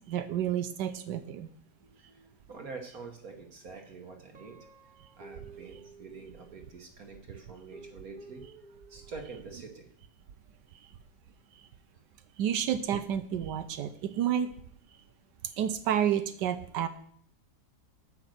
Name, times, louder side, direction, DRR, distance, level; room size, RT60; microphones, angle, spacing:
voice 1, 0.1-1.5 12.4-14.5 15.5-16.9, right 9 dB, 80° right, 11 dB, 1.3 m, -30 dB
voice 2, 1.8-8.5 8.9-9.9 15.1-15.2, right 4 dB, 55° right, 4 dB, 1.5 m, -46 dB
Guitar, 4.3-6.8 7.5-9.4, right 3 dB, 35° right, 0.8 m, -53 dB
9.1 x 5.7 x 7.7 m, 0.62 s
omnidirectional pair, 1.9 m